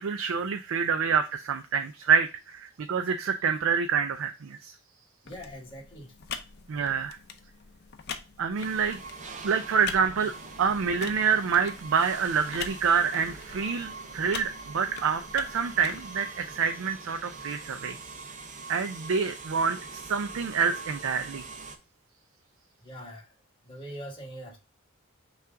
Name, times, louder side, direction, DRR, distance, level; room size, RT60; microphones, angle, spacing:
voice 1, 0.0-4.8 6.7-7.2 8.4-9.0 9.4-10.3 10.6-18.0 18.7-21.4, right 6 dB, 70° right, 7 dB, 0.4 m, -27 dB
voice 2, 5.2-6.1 22.8-23.3 23.6-24.6, equal, 25° left, -1 dB, 1.4 m, -42 dB
sound 1, 5.3-16.0, left 6 dB, 50° left, 0.5 m, -43 dB
sound 2, 8.6-21.8, right 4 dB, 35° right, 0.6 m, -43 dB
5.6 x 2.5 x 3.5 m, 0.29 s
head